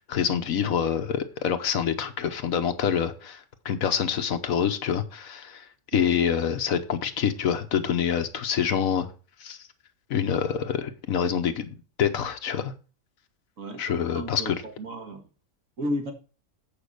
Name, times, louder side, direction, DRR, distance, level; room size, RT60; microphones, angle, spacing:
voice 1, 0.0-5.7 5.9-9.1 9.4-9.6 10.1-11.7 12.0-12.7 13.8-14.6, left 8 dB, 70° left, 8 dB, 1.3 m, -26 dB
voice 2, 14.1-15.2 15.8-16.1, equal, 60° right, 3 dB, 2.1 m, -33 dB
8.7 x 5.2 x 6.5 m, 0.36 s
omnidirectional pair, 1.6 m